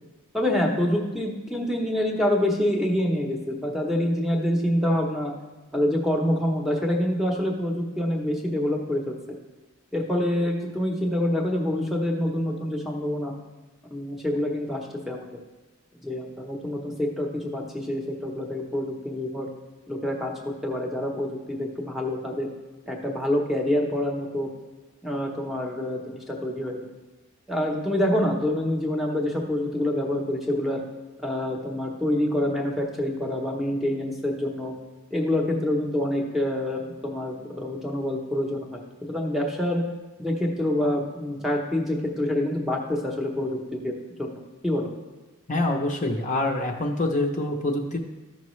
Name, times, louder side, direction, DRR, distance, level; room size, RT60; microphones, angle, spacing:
voice 1, 0.3-5.3 5.7-9.2 9.9-13.3 13.9-14.8 15.1-15.3 16.0-19.5 19.9-22.5 22.9-24.5 25.0-26.8 27.5-30.8 31.2-34.7 35.1-39.8 40.2-43.9 44.2-44.9, left 1 dB, ahead, 0 dB, 0.8 m, -26 dB
voice 2, 45.5-48.0, left 2 dB, 35° left, 2 dB, 0.7 m, -25 dB
13.5 x 5.7 x 3.1 m, 1.1 s
head